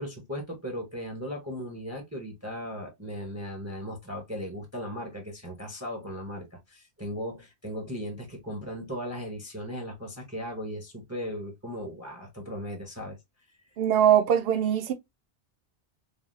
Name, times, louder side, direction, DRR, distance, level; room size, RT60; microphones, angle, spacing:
voice 1, 0.0-13.2, equal, 15° right, 0.7 m, -37 dB
voice 2, 13.8-14.9, right 10 dB, 60° right, 0.8 m, -22 dB
3.4 x 2.3 x 2.4 m
omnidirectional pair, 1.2 m